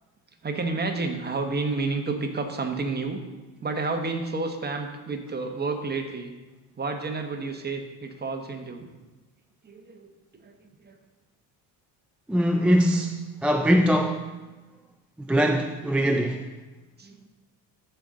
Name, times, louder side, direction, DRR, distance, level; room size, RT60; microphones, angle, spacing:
voice 1, 0.4-3.2 3.6-6.3 6.8-8.9 9.6-10.1 10.4-11.0 17.0-17.3, right 3 dB, 20° right, 4 dB, 1.2 m, -30 dB
voice 2, 12.3-14.3 15.3-16.5, equal, 5° right, 3 dB, 0.3 m, -22 dB
13.5 x 5.7 x 3.8 m, 1.2 s
cardioid pair, 115°, 44 cm